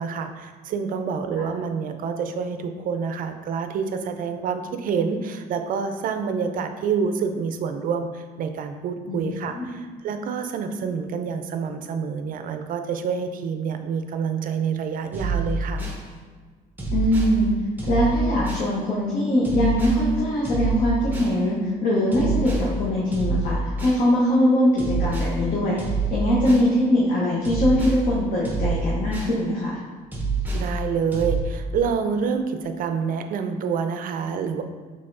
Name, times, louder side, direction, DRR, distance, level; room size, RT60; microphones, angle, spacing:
voice 1, 0.0-15.8 30.5-34.6, right 6 dB, 55° right, 7 dB, 0.4 m, -27 dB
sound 1, 15.1-16.0 16.8-17.4 17.8-18.7 19.4-20.0 20.4-21.4 22.1-22.7 23.1-24.0 24.8-25.4 25.8-26.7 27.4-28.0 28.4-29.4 30.1-30.7 31.1-31.4, right 3 dB, 10° right, 0.9 m, -26 dB
voice 2, 16.9-17.5 17.9-29.8, left 1 dB, 50° left, -5 dB, 0.9 m, -22 dB
5.6 x 3.5 x 2.6 m, 1.5 s
cardioid pair, 110°, 17 cm